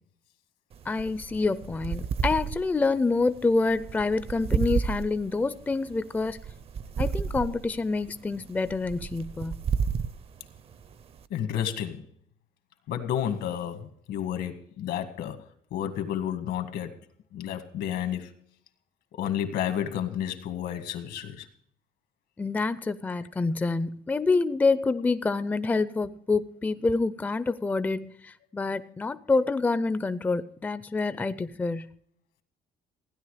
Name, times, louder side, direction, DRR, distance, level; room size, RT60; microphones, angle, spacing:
sound 1, 0.7-11.3, right 6 dB, 35° right, 0.6 m, -33 dB
voice 1, 0.9-6.4 7.0-9.6 22.4-31.9, left 3 dB, 10° left, 13 dB, 0.4 m, -27 dB
voice 2, 11.3-12.1 12.9-15.4 15.7-17.0 17.3-18.3 19.1-21.5, left 10 dB, 80° left, 8 dB, 1.9 m, -31 dB
16.0 x 10.5 x 4.9 m, 0.68 s
cardioid pair, 155°, 16 cm